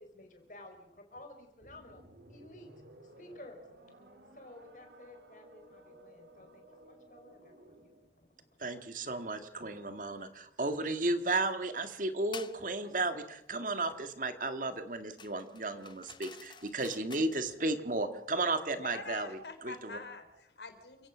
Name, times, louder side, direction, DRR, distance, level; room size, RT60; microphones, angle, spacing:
voice 1, 0.0-2.0 2.3-2.7 3.0-3.6 4.3-8.7, left 1 dB, 45° left, 5 dB, 4.6 m, -53 dB
sound 1, 1.6-8.1, right 1 dB, 75° right, 3.8 m, -57 dB
voice 2, 8.6-20.0, right 2 dB, 50° right, 9 dB, 1.8 m, -34 dB
sound 2, 12.3-12.6 15.2-17.5, left 6 dB, 25° left, 0.8 m, -49 dB
voice 3, 18.7-21.1, left 3 dB, 80° left, 8 dB, 3.8 m, -45 dB
29.0 x 17.0 x 6.2 m, 0.82 s
head